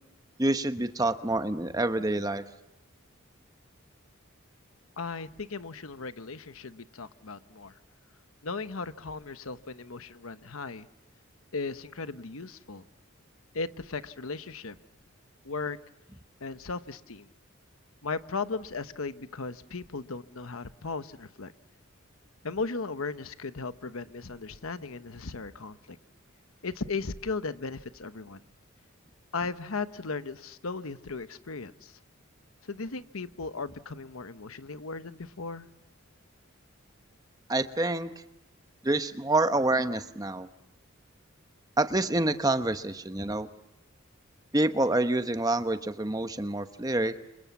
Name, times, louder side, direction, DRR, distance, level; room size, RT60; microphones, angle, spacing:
voice 1, 0.4-2.4 37.5-38.1 38.8-40.5 41.8-43.5 44.5-47.1, right 2 dB, 15° right, 9 dB, 0.9 m, -27 dB
voice 2, 5.0-7.7 8.4-10.9 11.5-12.8 13.5-14.7 15.4-15.8 16.4-17.3 18.0-21.5 22.4-26.0 26.6-28.4 29.3-32.0 32.6-35.7, left 4 dB, 75° left, 12 dB, 1.0 m, -36 dB
29.5 x 26.5 x 7.1 m, 0.89 s
head